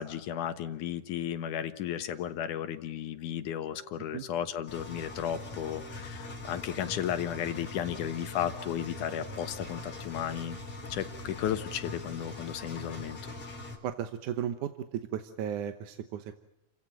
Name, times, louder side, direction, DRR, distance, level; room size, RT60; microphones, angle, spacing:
voice 1, 0.0-10.6 10.9-13.2, left 10 dB, 80° left, 9 dB, 2.8 m, -34 dB
Engine, 4.7-13.8, left 2 dB, 45° left, 5.0 m, -42 dB
voice 2, 13.8-16.4, right 9 dB, 80° right, 9 dB, 2.6 m, -35 dB
29.5 x 16.0 x 8.9 m, 0.86 s
omnidirectional pair, 3.5 m